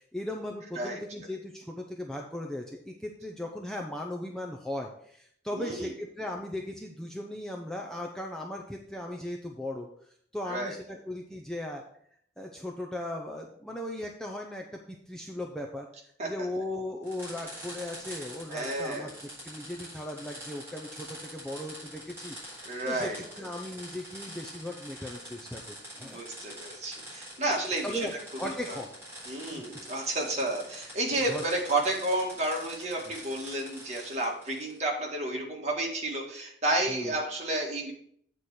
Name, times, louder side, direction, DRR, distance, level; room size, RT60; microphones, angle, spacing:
voice 1, 0.0-9.9 10.3-11.8 12.4-15.9 16.2-19.1 19.4-26.2 27.8-28.1 28.4-28.9 29.5-29.6 31.3-31.4 36.9-37.2, left 1 dB, 5° left, 1 dB, 0.6 m, -37 dB
voice 2, 5.5-5.9 10.4-10.7 16.2-16.3 18.5-19.1 22.7-23.5 26.0-28.1 28.4-28.8 29.3-37.9, right 1 dB, 35° right, -1 dB, 1.9 m, -31 dB
sound 1, 17.0-34.8, equal, 15° right, 4.0 m, -45 dB
8.3 x 4.3 x 6.3 m, 0.66 s
head